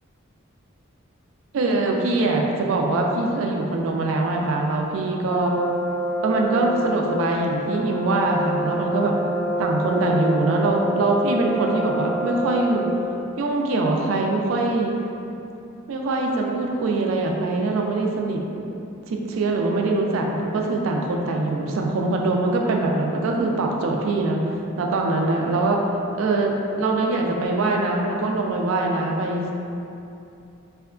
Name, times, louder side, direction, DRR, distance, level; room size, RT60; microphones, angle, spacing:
voice 1, 1.5-5.5 6.2-9.1 9.6-12.9 13.4-14.9 15.9-18.4 19.1-24.4 24.8-25.8 26.1-29.5, right 2 dB, 70° right, 1 dB, 0.3 m, -23 dB
Brass instrument, 5.3-13.1, right 1 dB, 10° right, 0.6 m, -27 dB
2.8 x 2.2 x 2.3 m, 2.7 s
head